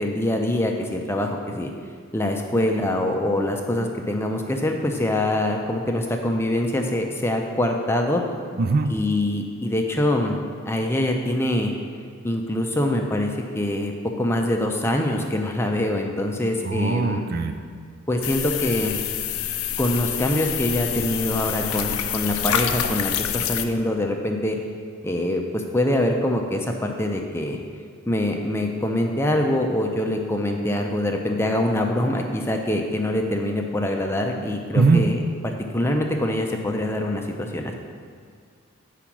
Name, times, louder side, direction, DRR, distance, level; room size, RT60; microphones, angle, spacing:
voice 1, 0.0-1.7 2.1-8.2 8.9-10.4 10.7-11.7 12.2-17.2 18.1-19.0 19.8-24.6 25.0-27.6 28.1-37.7, left 1 dB, 10° left, 2 dB, 0.5 m, -24 dB
voice 2, 8.6-8.9 16.6-17.5 34.7-35.0, right 3 dB, 45° right, 6 dB, 0.4 m, -20 dB
sound 1, 18.2-23.7, left 9 dB, 80° left, 0.5 m, -27 dB
8.6 x 5.0 x 5.9 m, 2.2 s
head